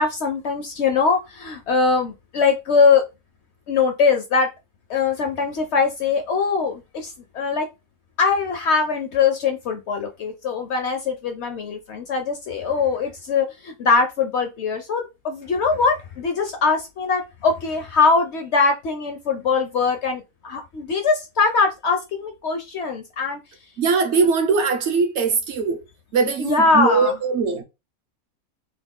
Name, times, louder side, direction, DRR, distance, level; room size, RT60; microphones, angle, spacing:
voice 1, 0.0-3.1 3.7-4.5 4.9-7.7 8.2-23.4 26.4-27.2, left 4 dB, 65° left, 0.7 m, -22 dB
voice 2, 23.8-25.8 26.1-27.6, right 4 dB, 65° right, 0.7 m, -21 dB
3.0 x 2.2 x 3.5 m
omnidirectional pair, 1.5 m